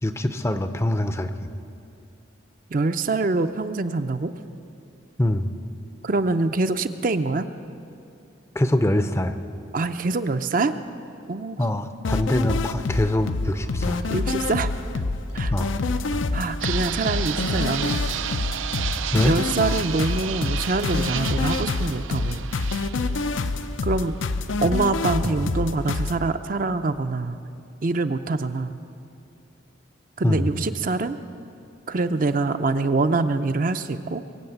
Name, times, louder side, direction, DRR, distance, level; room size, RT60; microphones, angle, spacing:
voice 1, 0.0-1.5 5.2-5.5 8.5-9.4 11.6-14.0 15.5-15.7 19.1-19.4 25.2-25.4 30.2-30.5, left 1 dB, 15° left, 9 dB, 0.5 m, -24 dB
voice 2, 2.7-4.3 6.0-7.5 9.7-10.7 11.3-11.7 14.1-14.7 15.3-15.5 16.3-18.0 19.2-22.5 23.8-24.1 24.6-27.4 27.8-28.8 30.2-31.2 31.9-34.2, right 3 dB, 45° right, 9 dB, 0.5 m, -25 dB
sound 1, 12.0-26.2, left 3 dB, 85° left, 0.6 m, -27 dB
sound 2, 13.5-17.3 18.0-22.2 22.4-22.6 23.3-24.1, right 1 dB, 75° right, 2.2 m, -39 dB
Fixed-wing aircraft airplane, 16.6-24.5, right 10 dB, 90° right, 0.5 m, -32 dB
22.5 x 7.8 x 8.0 m, 2.6 s
head